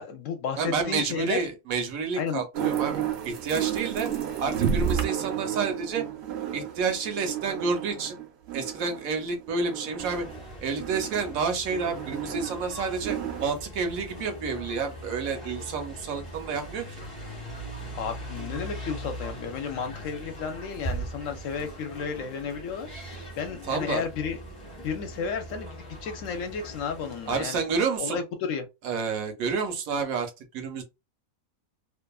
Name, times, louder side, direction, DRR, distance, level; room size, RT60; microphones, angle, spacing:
voice 1, 0.0-1.4 2.2-2.4 17.9-24.4 24.8-27.6 28.0-28.7, left 6 dB, 70° left, 0.9 m, -33 dB
voice 2, 0.6-4.1 4.4-6.0 6.5-8.2 8.5-10.3 10.6-17.1 23.7-24.1 27.3-28.2 28.8-30.8, right 5 dB, 75° right, 1.1 m, -29 dB
sound 1, 2.5-10.4 10.8-13.5, right 9 dB, 60° right, 0.7 m, -32 dB
sound 2, 10.0-27.4, right 1 dB, 25° left, 1.0 m, -40 dB
2.6 x 2.4 x 2.3 m
omnidirectional pair, 1.5 m